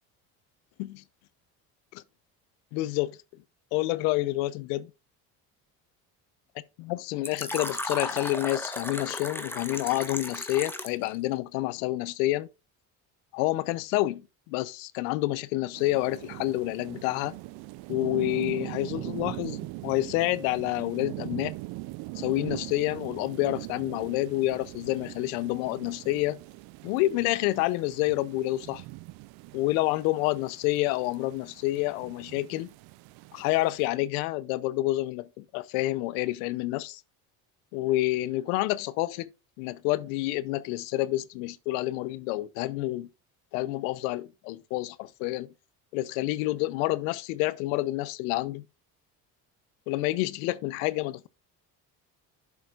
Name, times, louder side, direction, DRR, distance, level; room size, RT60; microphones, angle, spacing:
voice 1, 2.7-3.2 3.7-4.9 6.8-12.5 13.3-14.2 14.5-17.3 17.9-21.5 22.2-26.4 26.8-28.8 29.5-32.7 33.3-37.0 37.7-39.3 39.6-43.1 43.5-45.5 45.9-48.6 49.9-51.3, left 17 dB, 85° left, 0.6 m, -28 dB
Fill (with liquid), 7.2-11.1, left 1 dB, 5° left, 1.2 m, -35 dB
sound 1, 15.7-33.9, right 21 dB, 65° right, 0.5 m, -41 dB
10.5 x 7.1 x 2.4 m
supercardioid pair, 75°, 41 cm